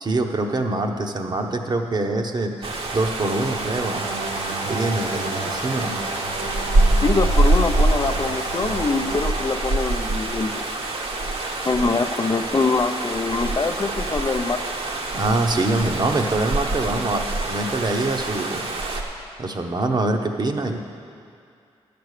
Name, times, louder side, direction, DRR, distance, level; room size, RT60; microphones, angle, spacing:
voice 1, 0.0-4.1 4.6-6.0 15.1-18.6 19.4-20.8, right 2 dB, 40° right, 4 dB, 1.0 m, -24 dB
sound 1, 2.6-19.0, right 2 dB, 60° right, 1.2 m, -25 dB
sound 2, 3.7-9.3, right 2 dB, 85° right, 2.1 m, -32 dB
voice 2, 7.0-10.6 11.6-14.6, left 4 dB, 35° left, 9 dB, 0.6 m, -24 dB
10.5 x 6.9 x 6.6 m, 2.4 s
cardioid pair, 65°, 11 cm